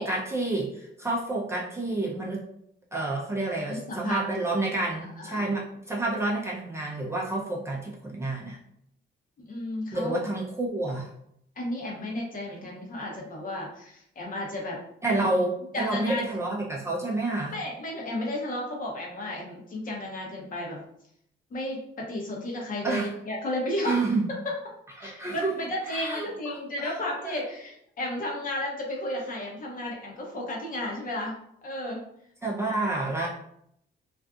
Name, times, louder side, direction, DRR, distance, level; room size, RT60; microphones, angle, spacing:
voice 1, 0.0-2.4 2.9-8.6 9.9-11.1 15.0-17.5 22.8-23.1 23.8-24.3 25.0-27.4 32.4-33.3, right 2 dB, 15° right, -4 dB, 0.5 m, -29 dB
voice 2, 3.7-4.4 5.2-5.6 9.4-10.2 11.6-14.8 15.7-16.2 17.5-20.9 21.5-24.0 25.0-31.3 31.6-32.0, left 1 dB, 45° left, -1 dB, 0.8 m, -33 dB
2.4 x 2.4 x 2.4 m, 0.72 s
cardioid pair, 90°, 20 cm